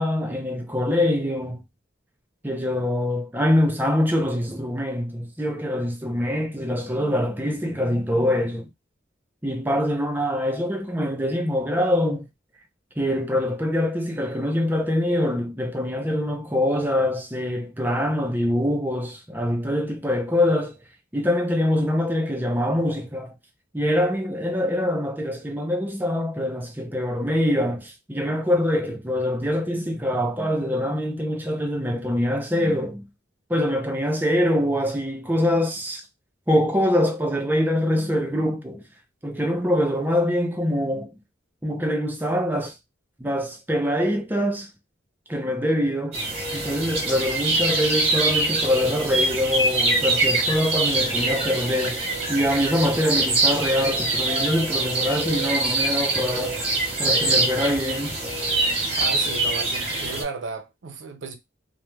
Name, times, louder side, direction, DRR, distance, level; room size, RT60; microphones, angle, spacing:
voice 1, 0.0-1.6 2.4-8.7 9.4-12.3 13.0-20.8 21.1-23.3 23.7-33.1 33.5-36.0 36.5-38.8 39.2-41.1 41.6-42.8 43.2-44.7 45.3-46.2 46.5-56.6 57.0-58.1 59.9-60.1, left 1 dB, 10° right, 0.5 m, -24 dB
sound 1, 46.1-60.2, right 2 dB, 35° right, 0.9 m, -24 dB
voice 2, 59.0-61.3, right 4 dB, 75° right, 0.5 m, -34 dB
2.3 x 2.1 x 3.1 m
head